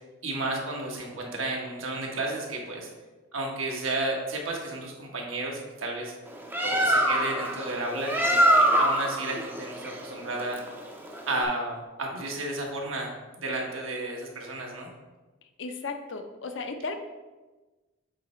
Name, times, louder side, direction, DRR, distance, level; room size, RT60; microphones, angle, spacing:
voice 1, 0.2-2.9 3.3-6.1 6.7-10.6 11.3-13.1 13.4-14.9, right 2 dB, 80° right, 0 dB, 1.3 m, -32 dB
Bird, 6.3-11.5, right 1 dB, 10° right, 0.5 m, -25 dB
voice 2, 15.6-17.0, left 3 dB, 60° left, 6 dB, 0.6 m, -35 dB
7.6 x 3.3 x 4.3 m, 1.2 s
head